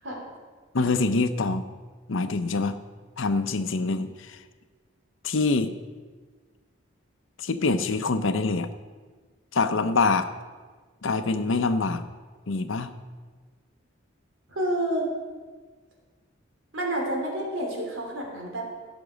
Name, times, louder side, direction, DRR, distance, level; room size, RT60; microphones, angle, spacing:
voice 1, 0.7-1.8 2.1-2.8 3.2-4.4 5.2-5.7 7.4-8.7 9.5-10.3 11.0-12.0 12.5-12.9, left 3 dB, 75° left, 11 dB, 0.7 m, -25 dB
voice 2, 14.5-15.1 16.7-18.6, right 1 dB, 80° right, 0 dB, 2.9 m, -29 dB
16.0 x 6.0 x 5.0 m, 1.5 s
head